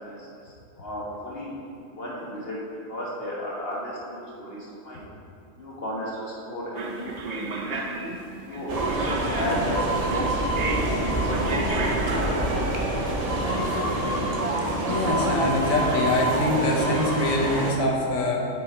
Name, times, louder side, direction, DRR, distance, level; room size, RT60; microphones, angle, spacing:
voice 1, 0.0-2.6 2.9-5.0 5.6-7.8 8.4-8.8 9.2-12.3, left 1 dB, 45° left, -6 dB, 1.6 m, -35 dB
sound 1, 6.7-13.4, right 3 dB, 50° right, 0.5 m, -33 dB
sound 2, 8.7-17.7, right 1 dB, 35° right, 0.8 m, -26 dB
voice 2, 14.9-18.4, left 2 dB, 70° left, -1 dB, 1.5 m, -24 dB
8.0 x 5.4 x 4.4 m, 2.5 s
omnidirectional pair, 1.5 m